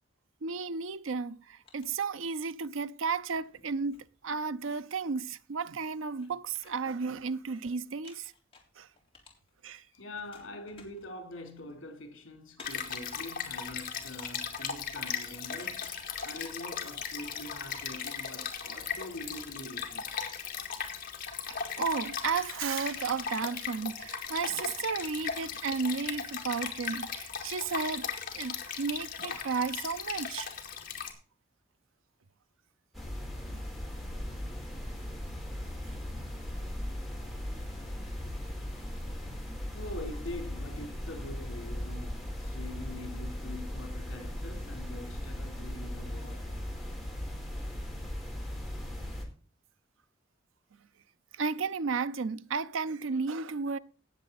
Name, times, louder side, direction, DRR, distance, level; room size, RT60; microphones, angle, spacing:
voice 1, 0.4-8.3 8.8-8.9 9.6-9.8 21.5-28.1 28.3-30.5 33.5-33.7 35.9-36.0 51.3-53.8, right 5 dB, 75° right, 0.6 m, -33 dB
sound 1, 1.3-2.6 3.0-4.7 5.3-5.4 5.7-7.6 7.9-9.8 10.1-18.4, left 3 dB, 30° left, 3.5 m, -58 dB
voice 2, 9.9-20.1 38.2-38.3 39.7-46.5, left 1 dB, 70° left, 3.6 m, -44 dB
Stream, 12.6-31.1, left 7 dB, 45° left, 2.3 m, -37 dB
sound 2, 32.9-49.3, left 1 dB, ahead, 4.0 m, -38 dB
17.5 x 7.5 x 4.1 m
head